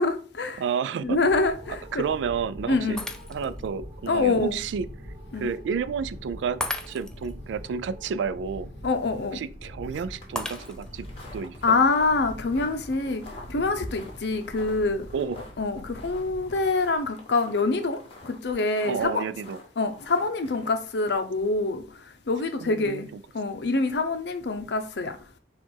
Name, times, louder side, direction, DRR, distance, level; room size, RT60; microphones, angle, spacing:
voice 1, 0.0-0.6 1.0-2.0 2.7-3.0 4.1-4.6 5.3-5.5 8.8-9.4 11.6-13.2 13.5-15.1 15.6-19.2 19.8-21.8 22.3-23.1 23.3-25.1, left 3 dB, 70° left, 0.6 m, -25 dB
voice 2, 0.6-1.2 1.9-3.0 3.3-4.9 5.4-6.6 6.9-8.7 9.3-11.1 11.3-11.6 15.1-15.5 18.8-19.6 22.6-23.2, right 6 dB, 85° right, 0.3 m, -30 dB
sound 1, 1.0-17.0, equal, 40° right, 1.3 m, -43 dB
Shatter, 3.0-3.7 4.2-4.3 6.6-7.3 10.4-11.1, left 1 dB, 5° left, 0.3 m, -34 dB
sound 2, 9.9-20.7, left 2 dB, 30° left, 1.1 m, -48 dB
4.5 x 2.4 x 4.4 m
head